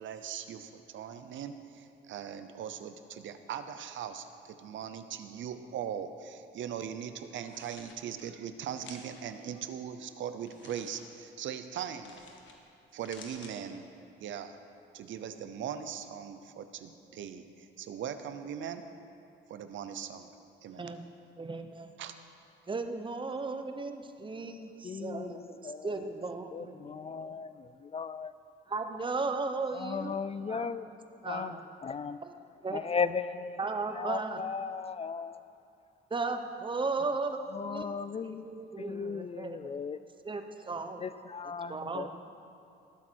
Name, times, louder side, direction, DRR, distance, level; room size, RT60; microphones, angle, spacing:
voice 1, 0.0-12.2 12.9-13.9 14.2-14.6 14.9-18.9 19.5-20.9 22.0-22.1, right 8 dB, 70° right, 10 dB, 0.7 m, -40 dB
sound 1, 7.3-8.0 8.8-9.2 10.4-11.0 12.0-12.6 12.9-13.5, left 5 dB, 70° left, 1.6 m, -52 dB
voice 2, 20.7-21.0 21.4-21.9 22.7-27.3 28.7-30.2 30.5-30.9 31.2-31.6 32.2-32.3 32.6-32.8 33.6-34.4 36.1-37.9 38.2-39.7 40.2-41.1 41.7-42.1, right 3 dB, 25° right, 7 dB, 1.0 m, -36 dB
voice 3, 24.6-26.1 26.5-28.3 29.7-30.9 31.2-32.2 32.7-33.6 33.9-35.4 37.5-38.5 38.8-40.0 41.0-42.1, left 5 dB, 30° left, 13 dB, 0.3 m, -36 dB
18.5 x 8.3 x 4.6 m, 2.6 s
cardioid pair, 90°, 20 cm